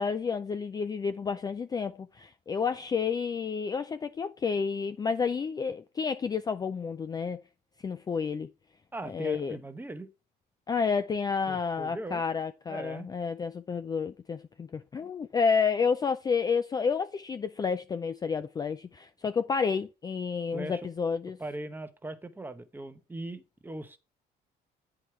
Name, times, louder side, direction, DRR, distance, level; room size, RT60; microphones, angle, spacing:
voice 1, 0.0-7.4 7.8-8.5 9.1-9.6 10.7-21.4, left 5 dB, 25° left, 0.4 m, -30 dB
voice 2, 8.9-10.1 11.5-12.2 12.7-13.1 20.5-20.8 21.4-24.0, right 2 dB, 10° right, 0.9 m, -39 dB
8.2 x 4.8 x 4.4 m
cardioid pair, 110°, 17 cm